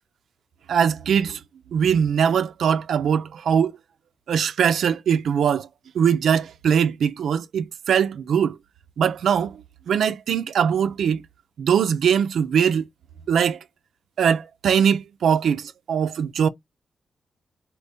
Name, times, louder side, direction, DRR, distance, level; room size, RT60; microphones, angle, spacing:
voice 1, 0.7-1.4 1.7-3.7 4.3-5.7 5.9-8.6 9.0-11.2 11.6-12.9 13.3-13.6 14.2-16.5, right 7 dB, 85° right, 0.4 m, -21 dB
4.3 x 2.7 x 3.3 m
wide cardioid pair, 180°, 0 cm